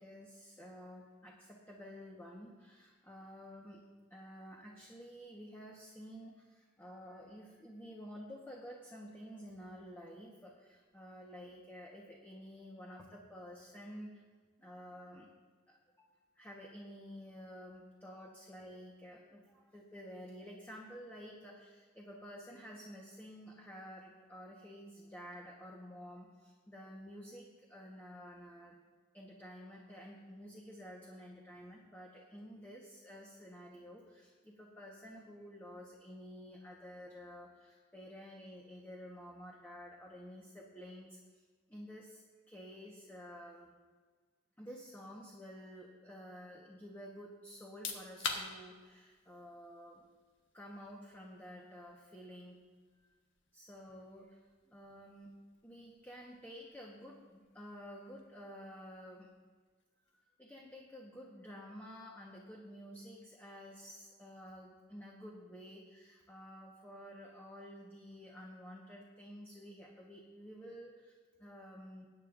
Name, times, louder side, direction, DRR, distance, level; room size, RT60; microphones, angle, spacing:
voice 1, 0.0-3.8 4.1-14.2 14.6-15.3 15.7-16.1 16.4-28.8 29.1-43.7 44.6-50.1 50.5-52.6 53.5-54.4 54.7-55.3 55.6-59.3 60.4-72.1, equal, 10° left, -3 dB, 1.2 m, -51 dB
Fizzy Drink Can Opening C, 47.6-60.2, left 4 dB, 85° left, 1.4 m, -50 dB
20.5 x 9.6 x 2.6 m, 1.5 s
head